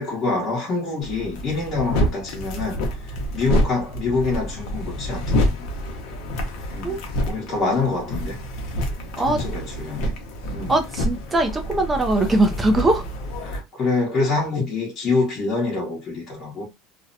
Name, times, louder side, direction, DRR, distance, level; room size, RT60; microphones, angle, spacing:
voice 1, 0.0-5.7 6.7-7.0 7.2-8.4 9.3-10.2 10.5-10.7 13.4-16.6, left 3 dB, 30° left, 1.0 m, -26 dB
sound 1, 1.0-13.6, equal, 60° left, 0.7 m, -27 dB
voice 2, 10.7-13.0, right 2 dB, 15° right, 0.4 m, -21 dB
2.6 x 2.1 x 2.5 m
cardioid pair, 160°, 0 cm